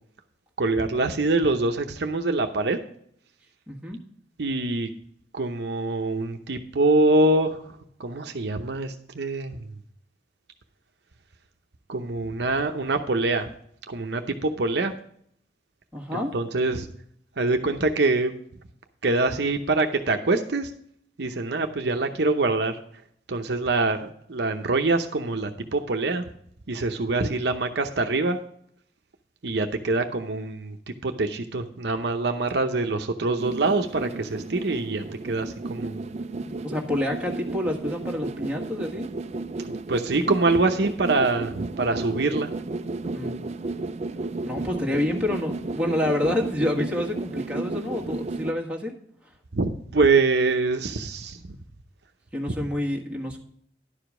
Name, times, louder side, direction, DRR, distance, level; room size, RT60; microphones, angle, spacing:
voice 1, 0.6-2.8 4.4-4.9 5.3-9.7 11.9-13.5 13.9-14.9 16.1-16.9 17.4-18.3 19.0-20.7 21.2-22.8 23.3-26.3 26.7-28.4 29.4-36.0 39.6-42.5 49.5-51.6 52.5-52.6, right 3 dB, 60° right, 6 dB, 0.8 m, -25 dB
voice 2, 3.7-4.0 15.9-16.3 36.6-39.1 43.1-43.4 44.4-49.0 49.2-49.3 52.3-53.4, left 1 dB, 5° right, -1 dB, 1.5 m, -28 dB
sound 1, 33.4-48.5, right 3 dB, 35° right, 0.4 m, -33 dB
11.5 x 5.0 x 6.0 m, 0.66 s
head